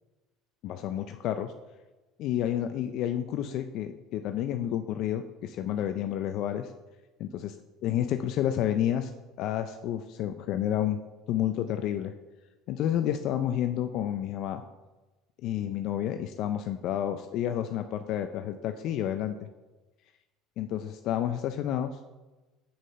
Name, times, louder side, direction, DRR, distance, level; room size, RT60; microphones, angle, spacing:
voice 1, 0.6-1.5 2.2-6.7 7.2-7.6 7.8-9.1 9.4-11.0 11.3-12.1 12.7-14.6 15.4-19.4 20.6-22.0, left 11 dB, 60° left, 8 dB, 0.4 m, -30 dB
5.7 x 5.2 x 5.5 m, 1.1 s
supercardioid pair, 100°, 0 cm